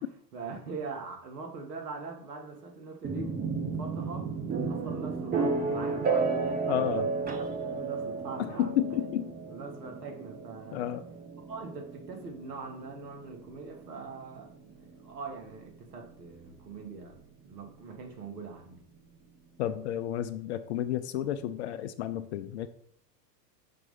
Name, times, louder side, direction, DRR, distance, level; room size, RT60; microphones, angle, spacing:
voice 1, 0.3-4.3 4.7-8.7 9.5-10.8 11.5-17.2 17.4-18.8, right 4 dB, 70° right, 4 dB, 1.5 m, -42 dB
sound 1, 3.0-16.8, right 4 dB, 20° right, 0.8 m, -33 dB
voice 2, 6.7-7.1 8.4-9.3 10.7-11.0 19.6-22.7, left 12 dB, 45° left, 11 dB, 0.4 m, -31 dB
5.8 x 3.1 x 5.4 m, 0.65 s
hypercardioid pair, 100°, 49 cm